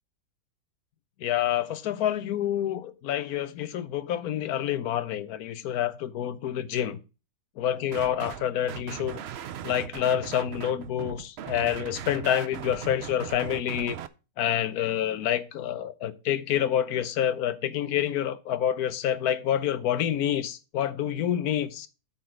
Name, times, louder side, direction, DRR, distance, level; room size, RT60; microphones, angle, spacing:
voice 1, 1.2-7.0 7.6-9.2 9.6-14.0 14.4-21.9, left 10 dB, 70° left, 1.2 m, -28 dB
sound 1, 7.9-8.4 8.7-14.1, right 10 dB, 75° right, 0.5 m, -38 dB
8.7 x 4.1 x 6.2 m
omnidirectional pair, 1.7 m